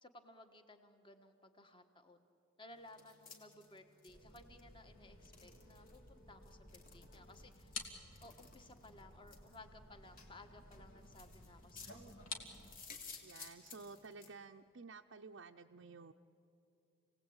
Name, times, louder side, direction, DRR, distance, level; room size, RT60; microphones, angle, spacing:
voice 1, 0.0-2.2 2.6-7.7 8.2-12.3, left 2 dB, 25° left, 7 dB, 1.3 m, -59 dB
sound 1, 2.7-14.3, left 4 dB, 40° left, 2.6 m, -59 dB
sound 2, 4.1-12.7, left 3 dB, 75° left, 2.6 m, -53 dB
voice 2, 13.2-16.1, right 4 dB, 60° right, 2 dB, 0.6 m, -53 dB
28.5 x 18.0 x 8.8 m, 2.9 s
head